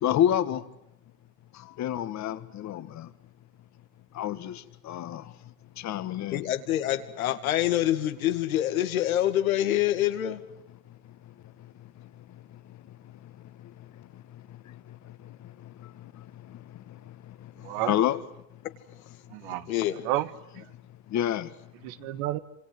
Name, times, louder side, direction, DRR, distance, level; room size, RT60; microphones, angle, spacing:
voice 1, 0.0-0.6 1.8-3.1 4.2-4.5 4.9-5.2 5.8-6.4 17.9-18.2 21.1-21.5, left 11 dB, 40° left, 1.9 m, -27 dB
voice 2, 6.3-10.4 19.7-20.0, left 13 dB, 90° left, 2.4 m, -26 dB
voice 3, 17.6-17.9 19.3-19.7 20.0-20.7 21.8-22.4, right 15 dB, 65° right, 1.6 m, -31 dB
27.5 x 25.5 x 7.8 m
supercardioid pair, 105°, 41 cm